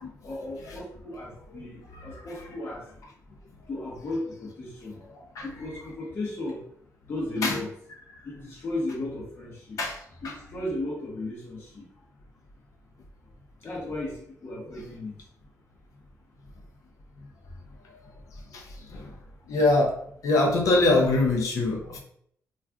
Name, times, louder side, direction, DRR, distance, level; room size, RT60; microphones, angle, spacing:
voice 1, 0.2-2.8 3.7-5.0 5.4-6.6 7.1-7.7 8.2-9.8 10.2-11.8 13.6-14.2 14.4-15.1, left 2 dB, 40° left, -5 dB, 0.8 m, -35 dB
voice 2, 5.1-5.5 7.4-7.6 9.8-10.0 10.2-10.3 18.5-18.6 18.9-19.1 19.5-19.9 20.2-22.0, left 2 dB, 70° left, 0 dB, 0.6 m, -23 dB
2.4 x 2.4 x 3.4 m, 0.67 s
cardioid pair, 115°, 6 cm